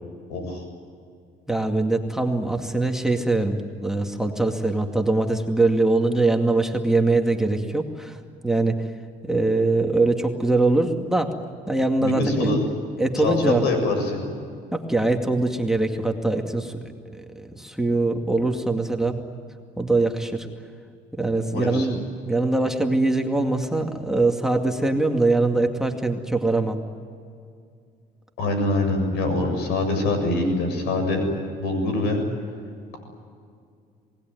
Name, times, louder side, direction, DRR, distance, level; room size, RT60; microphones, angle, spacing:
voice 1, 0.3-0.6 12.0-12.6 13.2-14.3 21.5-21.9 28.4-31.2 31.6-32.2, left 2 dB, 85° left, 6 dB, 7.4 m, -24 dB
voice 2, 1.5-8.2 8.4-8.9 9.2-11.3 11.7-12.5 13.0-13.6 14.7-19.2 19.8-20.5 21.1-26.8, right 2 dB, 5° right, 3 dB, 2.3 m, -22 dB
27.0 x 20.0 x 9.5 m, 2.3 s
cardioid pair, 110°, 17 cm